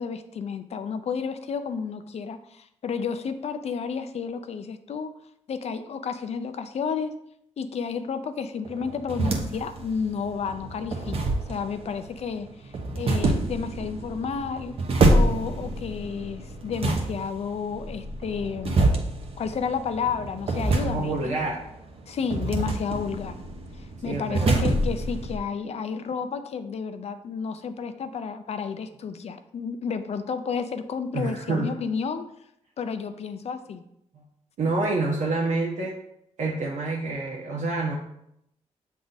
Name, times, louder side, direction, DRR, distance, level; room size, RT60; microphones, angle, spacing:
voice 1, 0.0-5.1 5.5-7.1 7.6-11.2 11.5-14.7 15.1-19.0 19.4-21.3 22.1-23.4 23.8-32.3 32.8-33.8, left 6 dB, 60° left, 9 dB, 0.5 m, -31 dB
sound 1, 8.6-25.4, right 2 dB, 50° right, 1.0 m, -27 dB
voice 2, 20.8-21.6 24.0-24.6 31.1-31.7 34.1-34.2 34.6-35.9 36.4-37.9, right 3 dB, 85° right, -5 dB, 1.2 m, -27 dB
7.5 x 3.6 x 4.0 m, 0.76 s
cardioid pair, 105°, 12 cm